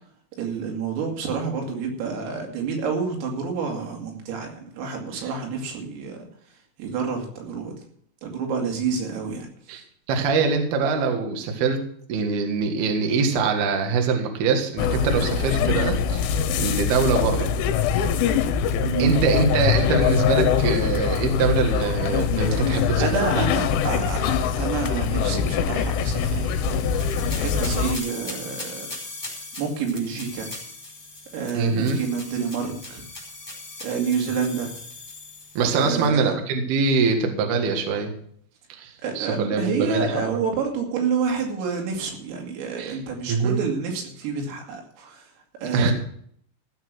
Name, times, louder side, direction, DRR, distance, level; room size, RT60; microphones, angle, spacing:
voice 1, 0.4-6.3 6.8-7.8 8.2-9.5 18.8-19.3 23.0-27.0 27.3-28.9 29.6-30.5 31.3-33.0 33.8-34.8 35.7-36.3 39.0-45.3 45.6-45.9, right 5 dB, 90° right, 1 dB, 5.2 m, -28 dB
voice 2, 10.1-17.5 19.0-23.4 31.5-32.0 35.5-38.1 38.7-40.3 42.8-43.0 43.3-43.6 45.7-45.9, right 4 dB, 60° right, 4 dB, 3.1 m, -23 dB
sound 1, 14.8-28.0, left 7 dB, 80° left, 3.1 m, -23 dB
sound 2, 26.1-36.1, left 2 dB, 5° left, 3.7 m, -39 dB
16.0 x 6.9 x 6.3 m, 0.63 s
omnidirectional pair, 5.9 m